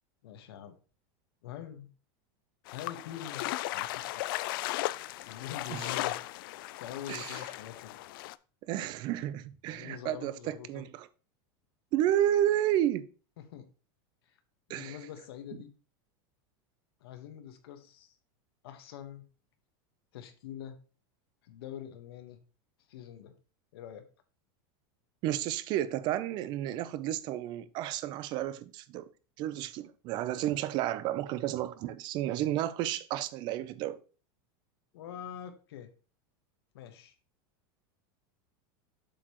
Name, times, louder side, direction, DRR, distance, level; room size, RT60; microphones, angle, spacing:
voice 1, 0.2-0.7 1.4-1.9 2.7-3.4 3.7-4.3 5.3-6.2 6.8-7.9 9.7-10.8 13.4-13.7 14.7-15.7 17.0-18.1 18.6-19.2 20.1-20.8 21.4-22.4 22.9-23.3 23.7-24.0 34.9-35.9 36.7-37.1, left 10 dB, 85° left, 1.3 m, -44 dB
sound 1, 2.7-8.3, left 17 dB, 65° left, 0.4 m, -36 dB
voice 2, 7.1-7.4 8.7-11.1 11.9-13.1 14.7-15.0 25.2-29.1 29.4-34.0, right 12 dB, 35° right, 0.5 m, -31 dB
7.7 x 6.7 x 3.0 m
supercardioid pair, 160°, 13 cm